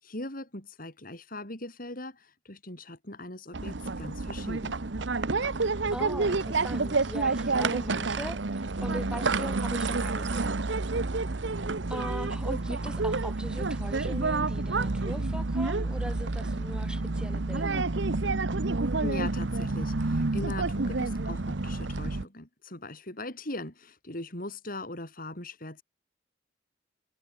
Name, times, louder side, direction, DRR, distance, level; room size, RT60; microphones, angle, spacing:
voice 1, 0.0-4.7 19.0-25.8, left 2 dB, 50° left, 7.5 m, -40 dB
sound 1, 3.5-22.2, right 3 dB, 75° right, 1.0 m, -29 dB
voice 2, 5.9-10.5 11.9-17.9, equal, 5° right, 3.9 m, -40 dB
head